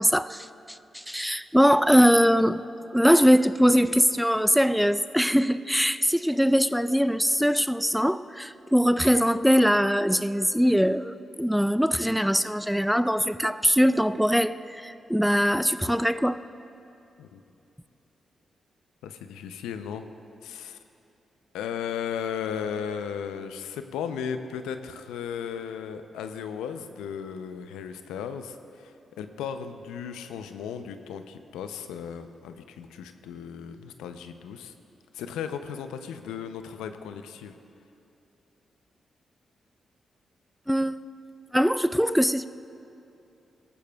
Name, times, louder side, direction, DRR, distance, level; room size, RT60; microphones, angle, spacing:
voice 1, 0.0-2.6 2.9-16.4 40.7-41.0 41.5-42.5, equal, ahead, 14 dB, 0.4 m, -22 dB
voice 2, 19.0-20.0 20.4-20.8 21.5-34.7 35.1-37.6, left 7 dB, 85° left, 8 dB, 0.5 m, -35 dB
17.5 x 14.0 x 2.3 m, 2.8 s
supercardioid pair, 45°, 0 cm